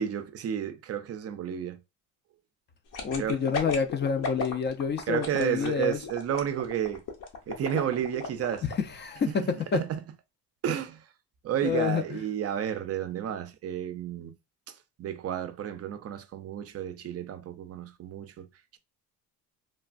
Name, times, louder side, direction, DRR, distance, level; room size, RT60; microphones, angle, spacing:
voice 1, 0.0-1.8 3.2-3.4 5.1-7.0 7.5-8.7 9.7-10.0 10.6-11.1 11.4-14.3 14.7-18.5 18.7-18.8, right 10 dB, 40° right, 0.4 m, -32 dB
sound 1, 2.9-8.7 9.1-9.2, left 4 dB, 55° left, 0.8 m, -35 dB
voice 2, 3.0-6.0 9.0-9.8 11.6-12.0, left 6 dB, 30° left, 0.4 m, -28 dB
3.3 x 2.1 x 2.5 m
cardioid pair, 105°, 37 cm